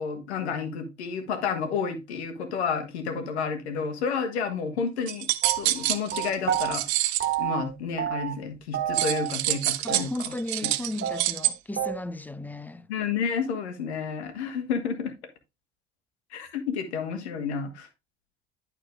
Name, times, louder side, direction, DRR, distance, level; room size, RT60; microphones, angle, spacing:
voice 1, 0.0-5.3 5.6-7.1 7.4-10.1 10.6-10.7 12.9-15.2 16.3-17.9, left 6 dB, 80° left, 1.8 m, -30 dB
sound 1, 5.1-7.3 8.9-11.5, right 16 dB, 70° right, 0.7 m, -27 dB
sound 2, 5.4-6.8 7.2-7.7 8.0-8.5 8.7-9.6 9.9-10.0 10.3-10.4 10.6-10.7 11.0-12.0, right 10 dB, 35° right, 2.2 m, -29 dB
voice 2, 9.8-12.9, left 2 dB, 5° left, 0.8 m, -35 dB
11.5 x 4.5 x 3.4 m
hypercardioid pair, 65°, 33 cm